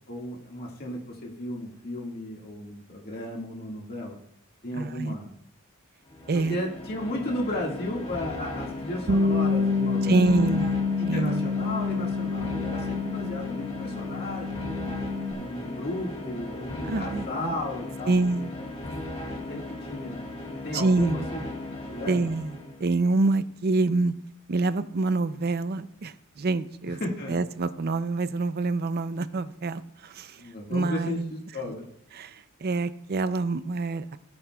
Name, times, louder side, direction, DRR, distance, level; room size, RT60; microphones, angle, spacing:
voice 1, 0.0-4.2 4.6-5.3 6.3-10.5 11.0-15.0 15.4-18.2 18.6-18.7 19.5-19.6 19.9-20.3 20.6-21.4 21.7-22.2 26.9-27.4 30.4-31.8, left 1 dB, 45° left, -2 dB, 1.8 m, -34 dB
voice 2, 4.8-5.2 6.3-6.6 10.0-10.7 11.1-11.4 16.8-17.6 18.0-18.5 20.7-21.3 22.1-24.1 24.5-27.0 27.3-30.4 30.7-31.3 32.1-34.2, right 3 dB, 45° right, 13 dB, 0.5 m, -26 dB
sound 1, 6.0-22.9, left 2 dB, 25° left, 1.6 m, -37 dB
Bass guitar, 9.1-15.3, left 4 dB, 60° right, 1.4 m, -27 dB
17.5 x 9.2 x 2.3 m, 0.75 s
head